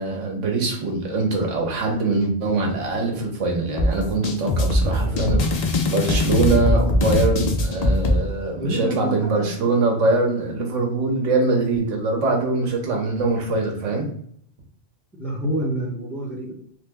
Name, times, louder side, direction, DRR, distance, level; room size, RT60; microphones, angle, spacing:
voice 1, 0.0-14.1, right 3 dB, 90° right, 1 dB, 1.2 m, -23 dB
sound 1, 3.8-8.2, left 1 dB, 60° left, 0.4 m, -21 dB
voice 2, 5.0-5.3 8.6-9.5 15.1-16.5, equal, ahead, -4 dB, 0.6 m, -28 dB
3.3 x 2.0 x 3.4 m, 0.64 s
omnidirectional pair, 1.2 m